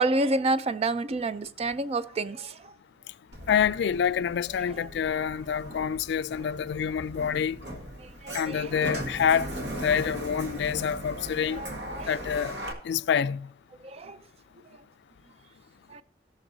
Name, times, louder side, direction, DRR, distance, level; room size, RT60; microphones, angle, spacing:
voice 1, 0.0-2.5 8.5-8.7 11.6-12.1 13.9-14.2 15.9-16.0, right 3 dB, 35° right, 0.4 m, -28 dB
Sliding door, 3.3-12.7, equal, 70° right, 1.7 m, -38 dB
voice 2, 3.5-7.6 8.3-9.5 9.8-11.6 12.1-12.6 12.8-13.5, left 7 dB, 70° left, 0.3 m, -27 dB
17.5 x 6.3 x 2.7 m
head